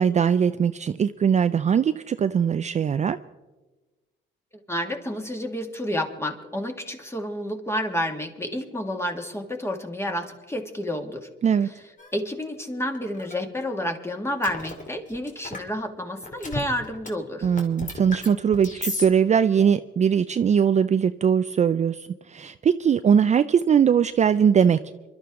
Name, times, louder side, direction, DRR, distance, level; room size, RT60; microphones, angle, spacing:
voice 1, 0.0-3.2 11.4-11.7 17.4-24.8, right 7 dB, 35° right, 11 dB, 0.4 m, -21 dB
voice 2, 4.7-11.3 11.6-11.7 12.1-17.5, left 1 dB, 15° left, 4 dB, 2.1 m, -30 dB
sound 1, 12.0-12.1 12.9-13.4 14.4-15.7 16.2-17.1 17.3-19.0, left 3 dB, 40° left, 2.6 m, -34 dB
26.5 x 12.0 x 3.7 m, 1.2 s
cardioid pair, 90°, 20 cm